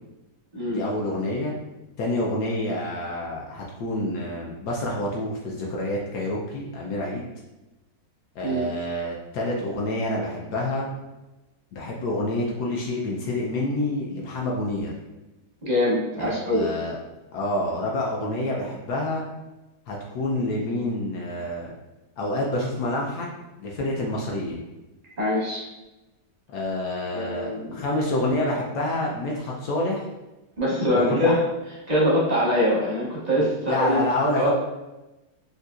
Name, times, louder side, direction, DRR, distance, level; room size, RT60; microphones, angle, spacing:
voice 1, 0.7-1.5 2.0-7.3 8.4-10.9 11.7-14.9 16.2-17.0 17.3-19.2 19.9-21.7 22.2-23.3 23.6-24.6 26.5-30.1 30.9-31.4 33.4-34.5, left 1 dB, 75° left, -3 dB, 1.1 m, -28 dB
voice 2, 15.6-16.7 25.2-25.6 27.1-27.8 30.6-31.3 31.9-34.0 34.3-34.5, left 1 dB, 45° right, -6 dB, 0.5 m, -23 dB
3.9 x 2.6 x 2.3 m, 1.0 s
omnidirectional pair, 1.8 m